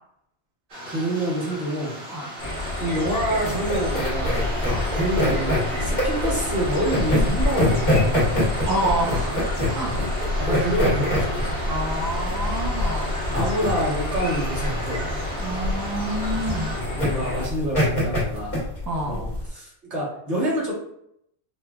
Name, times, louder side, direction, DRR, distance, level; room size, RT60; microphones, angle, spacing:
sound 1, 0.7-16.8, equal, 70° right, 1.3 m, -38 dB
voice 1, 0.9-2.0 2.8-4.5 4.9-8.5 9.8-10.1 10.4-11.6 12.8-12.9 13.3-15.1 16.7-18.6 19.0-20.7, equal, 85° right, -6 dB, 1.7 m, -27 dB
sound 2, 2.4-17.5, left 1 dB, 75° left, 1.2 m, -29 dB
sound 3, 3.3-19.5, left 1 dB, 45° left, 1.4 m, -25 dB
voice 2, 8.6-9.4 9.7-9.9 11.7-13.2 15.4-16.8 18.9-19.2, right 1 dB, 20° right, -1 dB, 0.5 m, -28 dB
4.8 x 2.3 x 2.3 m, 0.74 s
omnidirectional pair, 1.1 m